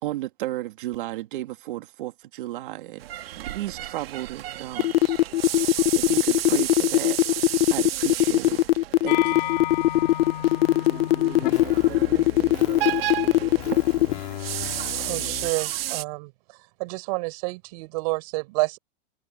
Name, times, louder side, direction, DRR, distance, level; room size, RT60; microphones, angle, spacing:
voice 1, 0.0-5.0 5.6-8.6 9.0-9.5, right 15 dB, 60° right, 2.3 m, -34 dB
sound 1, 3.0-16.0, right 13 dB, 90° right, 2.3 m, -33 dB
sound 2, 4.8-14.1, left 16 dB, 75° left, 1.2 m, -19 dB
sound 3, 9.1-15.5, left 17 dB, 50° left, 5.2 m, -34 dB
voice 2, 10.7-14.2, right 8 dB, 15° right, 1.9 m, -42 dB
voice 3, 15.0-18.8, right 27 dB, 40° right, 6.6 m, -30 dB
supercardioid pair, 175°, 29 cm